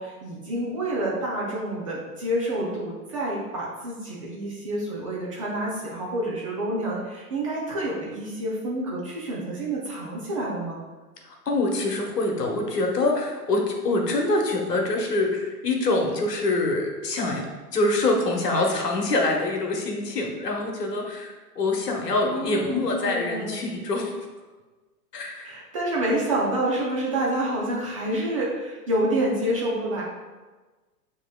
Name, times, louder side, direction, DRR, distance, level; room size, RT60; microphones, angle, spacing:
voice 1, 0.0-10.8 22.2-23.7 25.4-30.0, right 1 dB, 25° right, -4 dB, 0.4 m, -28 dB
voice 2, 11.2-24.1 25.1-25.5, left 2 dB, 85° left, 1 dB, 1.1 m, -25 dB
7.0 x 3.0 x 2.2 m, 1.3 s
hypercardioid pair, 125°, 47 cm